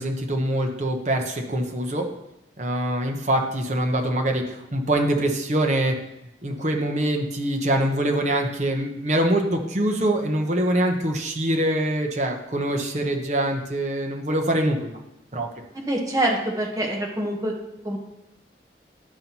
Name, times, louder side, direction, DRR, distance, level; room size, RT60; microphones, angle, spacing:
voice 1, 0.0-2.1 2.6-6.0 6.4-15.0 15.3-15.5, right 1 dB, 40° right, 3 dB, 0.9 m, -24 dB
voice 2, 15.9-17.5 17.8-18.0, right 1 dB, 20° right, -1 dB, 1.1 m, -25 dB
11.0 x 5.4 x 3.0 m, 0.87 s
head